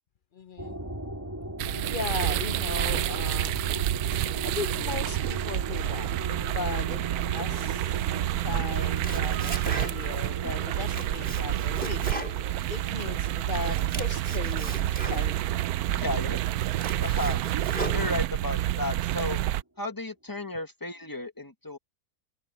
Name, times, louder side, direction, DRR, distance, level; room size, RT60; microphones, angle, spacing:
voice 1, 0.3-0.8 1.8-3.7 4.4-6.1 6.4-7.0 7.3-8.0 8.4-12.0 12.7-15.4, left 5 dB, 45° left, 0.7 m, -37 dB
sound 1, 0.6-18.0, right 1 dB, 10° right, 3.0 m, -40 dB
sound 2, 1.6-19.6, right 14 dB, 75° right, 1.0 m, -29 dB
Domestic sounds home sounds, 8.8-10.3 10.6-13.2 13.5-15.5 16.1-16.2 16.6-18.5, right 1 dB, 35° right, 4.2 m, -38 dB
voice 2, 15.9-16.4 17.0-17.4 17.9-19.4 19.8-21.8, left 2 dB, 15° left, 1.5 m, -33 dB
omnidirectional pair, 1.7 m